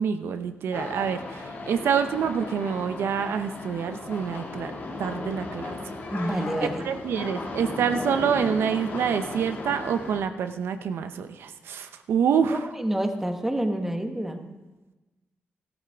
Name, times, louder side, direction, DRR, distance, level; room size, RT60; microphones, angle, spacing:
voice 1, 0.0-4.7 5.0-5.8 6.6-12.7, right 7 dB, 85° right, 9 dB, 0.6 m, -27 dB
sound 1, 0.7-10.2, left 2 dB, 55° left, 1.8 m, -36 dB
voice 2, 6.1-6.9 12.5-14.5, right 1 dB, 10° right, 5 dB, 1.2 m, -28 dB
13.5 x 12.5 x 3.5 m, 1.1 s
cardioid pair, 90°, 4 cm